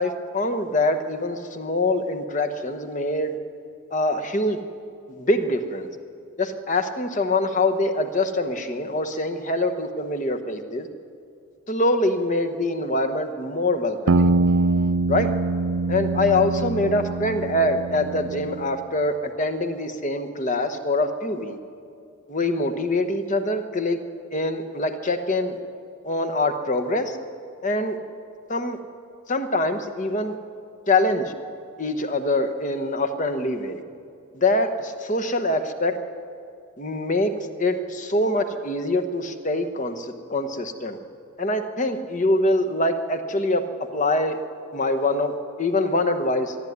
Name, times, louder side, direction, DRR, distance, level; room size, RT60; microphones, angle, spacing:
voice 1, 0.0-3.3 3.9-4.6 5.1-5.9 6.4-10.9 11.7-14.3 15.1-15.3 15.9-21.6 22.3-24.0 24.3-25.6 26.0-27.2 27.6-28.0 28.5-28.8 29.3-30.4 30.9-31.3 31.8-33.8 34.3-36.0 36.8-37.3 37.6-41.0 41.4-44.4 44.7-46.6, left 2 dB, 35° left, 7 dB, 1.1 m, -24 dB
sound 1, 14.1-18.7, right 3 dB, 65° right, 0.5 m, -23 dB
22.0 x 12.5 x 9.4 m, 2.5 s
head